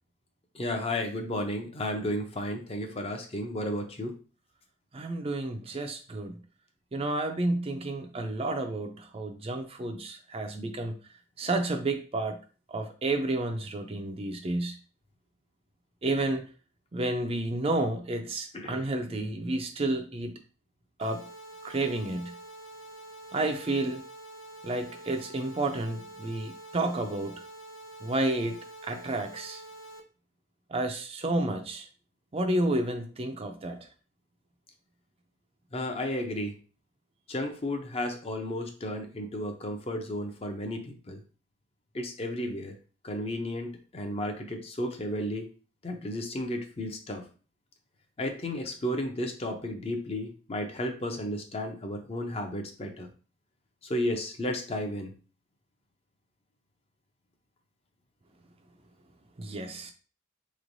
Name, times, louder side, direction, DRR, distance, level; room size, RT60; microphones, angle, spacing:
voice 1, 0.5-4.1 18.5-18.8 35.7-36.5 37.3-41.2 41.9-42.7 43.0-45.5 45.8-47.2 48.2-53.1 53.8-55.1, left 1 dB, 30° left, 4 dB, 0.5 m, -33 dB
voice 2, 4.9-6.4 6.9-11.0 11.4-12.4 12.7-14.8 16.0-16.5 16.9-20.3 21.0-21.2 21.6-22.3 23.3-24.0 24.6-27.4 28.0-29.6 30.7-31.9 32.3-33.9 59.4-59.9, right 2 dB, 30° right, 5 dB, 0.4 m, -31 dB
sound 1, 21.0-30.0, right 1 dB, 85° left, 0.6 m, -47 dB
4.1 x 3.1 x 2.6 m, 0.37 s
head